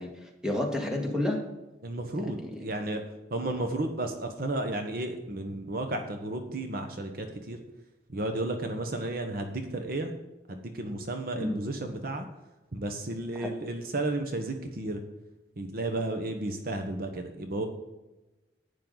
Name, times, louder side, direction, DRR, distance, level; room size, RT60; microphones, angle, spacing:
voice 1, 0.0-1.5 2.3-2.6 11.4-11.6 13.4-13.5, left 1 dB, 5° right, 1 dB, 1.8 m, -31 dB
voice 2, 1.8-3.0 3.3-7.6 8.1-10.1 10.5-12.3 12.7-15.0 15.6-17.7, right 2 dB, 55° right, 6 dB, 1.1 m, -33 dB
11.5 x 9.4 x 4.0 m, 1.0 s
head